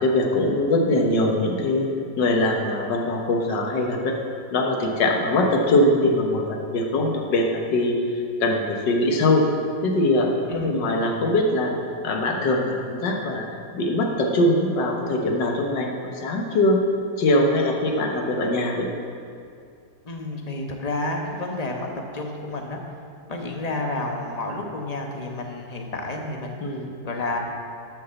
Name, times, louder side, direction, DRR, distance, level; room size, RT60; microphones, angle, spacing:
voice 1, 0.0-1.9 2.2-4.2 4.5-9.5 9.8-11.8 12.0-13.5 13.7-16.8 17.2-18.9 26.6-26.9, left 1 dB, 70° left, 1 dB, 1.8 m, -22 dB
voice 2, 20.0-21.9 22.1-22.8 23.3-27.4, left 2 dB, 25° left, 1 dB, 1.0 m, -30 dB
11.5 x 5.9 x 7.0 m, 2.4 s
omnidirectional pair, 2.0 m